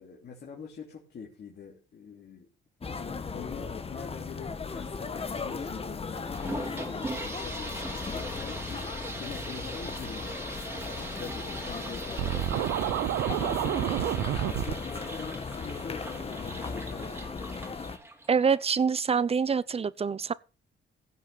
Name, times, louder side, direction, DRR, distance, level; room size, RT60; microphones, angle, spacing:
voice 1, 0.0-2.5 2.9-13.0 13.4-17.2, left 6 dB, 55° left, 3.1 m, -44 dB
sound 1, 2.8-18.0, left 4 dB, 30° left, 1.4 m, -37 dB
sound 2, 6.1-18.6, right 2 dB, 10° right, 3.0 m, -41 dB
Scratching (performance technique), 12.2-14.7, right 14 dB, 90° right, 0.8 m, -29 dB
voice 2, 18.3-20.3, right 6 dB, 30° right, 0.7 m, -25 dB
16.0 x 5.9 x 5.9 m
cardioid pair, 90°, 20 cm